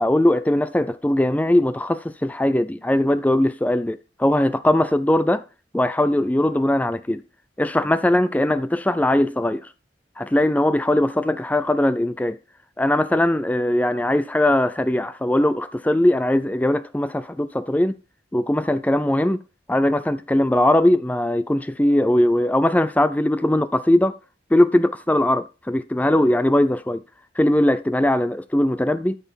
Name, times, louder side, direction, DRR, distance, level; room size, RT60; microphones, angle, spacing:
voice 1, 0.0-5.4 5.7-7.2 7.6-9.7 10.2-12.4 12.8-18.0 18.3-19.4 19.7-24.2 24.5-27.0 27.4-29.2, left 1 dB, 10° left, 0.4 m, -20 dB
12.5 x 5.7 x 4.5 m
head